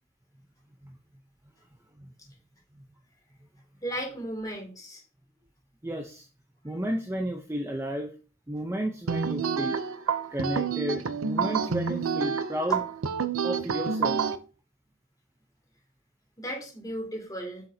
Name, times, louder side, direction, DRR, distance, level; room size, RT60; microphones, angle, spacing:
voice 1, 3.8-5.0 16.4-17.6, equal, 20° left, 0 dB, 2.6 m, -35 dB
voice 2, 5.8-6.3 6.6-8.1 8.5-9.8 10.3-12.8 13.4-14.2, equal, 15° right, 3 dB, 0.7 m, -32 dB
sound 1, 9.1-14.4, right 6 dB, 75° right, 0.6 m, -28 dB
7.4 x 6.6 x 2.8 m, 0.36 s
head